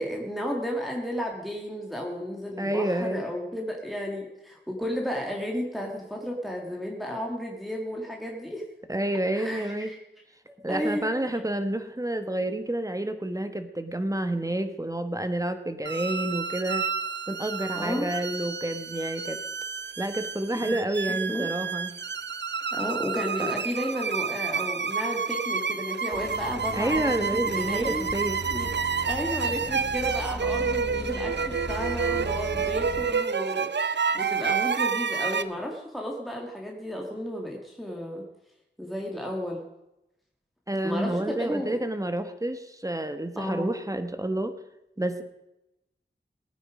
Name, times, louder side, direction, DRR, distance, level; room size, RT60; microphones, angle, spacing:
voice 1, 0.0-8.6 9.3-10.0 10.7-11.1 17.7-18.1 20.6-20.8 21.1-21.5 22.7-28.1 28.5-28.7 29.0-38.2 38.8-39.6 40.8-41.7 43.4-43.7, equal, ahead, -1 dB, 2.2 m, -33 dB
voice 2, 2.6-3.2 8.9-9.9 10.6-16.9 17.3-19.4 20.0-21.9 23.4-23.5 26.7-28.4 40.7-44.5 45.0-45.2, right 1 dB, 15° right, 8 dB, 1.4 m, -29 dB
sound 1, 15.9-35.4, right 6 dB, 70° right, 0.6 m, -29 dB
sound 2, 26.1-33.2, left 2 dB, 60° left, 1.8 m, -38 dB
19.5 x 9.1 x 5.0 m, 0.90 s
wide cardioid pair, 70°, 19 cm